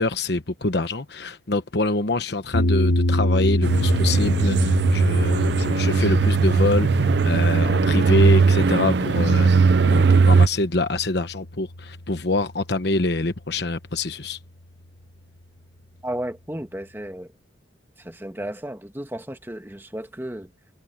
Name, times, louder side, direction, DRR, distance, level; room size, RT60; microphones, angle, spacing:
voice 1, 0.0-9.5 9.8-14.4, left 2 dB, 60° left, 1.1 m, -25 dB
sound 1, 2.5-12.8, left 1 dB, 90° left, 1.6 m, -26 dB
sound 2, 3.6-10.5, right 4 dB, 60° right, 0.5 m, -19 dB
voice 2, 16.0-17.3 18.0-20.5, right 1 dB, 10° right, 1.5 m, -33 dB
head